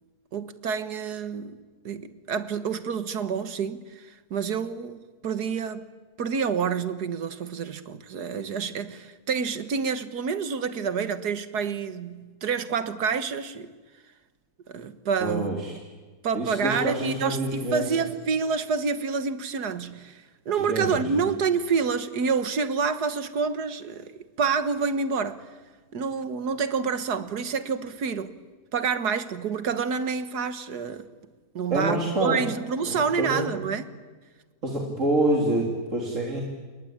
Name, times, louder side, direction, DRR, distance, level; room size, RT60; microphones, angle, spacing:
voice 1, 0.3-1.6 1.9-5.9 6.2-13.7 14.7-15.5 16.2-24.1 24.4-25.4 25.9-28.3 28.7-31.1 31.5-33.9, right 5 dB, 90° right, 2.0 m, -28 dB
voice 2, 15.2-15.8 16.3-17.8 20.6-21.3 31.7-32.5 32.9-33.5 34.6-36.4, right 1 dB, 50° right, 3.6 m, -27 dB
28.0 x 23.0 x 8.8 m
omnidirectional pair, 1.7 m